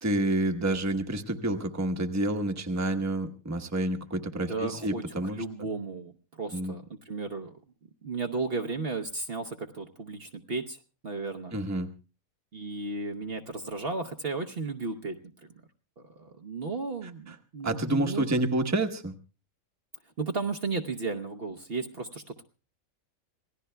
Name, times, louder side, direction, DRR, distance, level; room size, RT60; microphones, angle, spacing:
voice 1, 0.0-5.7 6.5-6.7 11.5-11.9 17.3-17.4 17.6-19.1, right 1 dB, 15° right, 4 dB, 1.0 m, -29 dB
voice 2, 4.3-7.5 8.0-11.5 12.5-15.5 16.0-18.3 20.2-22.4, right 3 dB, 50° right, 5 dB, 1.0 m, -34 dB
26.5 x 18.5 x 2.3 m, 0.34 s
omnidirectional pair, 1.4 m